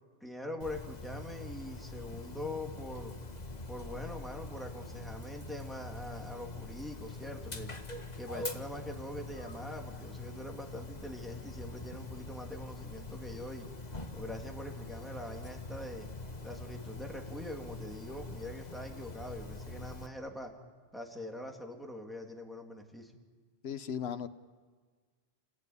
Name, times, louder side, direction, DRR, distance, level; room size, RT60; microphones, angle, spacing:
voice 1, 0.2-3.1 3.7-7.7 8.2-13.7 14.1-16.1 16.4-20.5 20.9-23.1, left 1 dB, ahead, 1 dB, 3.0 m, -43 dB
Dog, 0.6-20.1, left 2 dB, 40° left, 1.7 m, -44 dB
voice 2, 23.6-24.3, left 8 dB, 80° left, 11 dB, 1.2 m, -36 dB
28.5 x 20.0 x 9.6 m, 1.5 s
omnidirectional pair, 1.1 m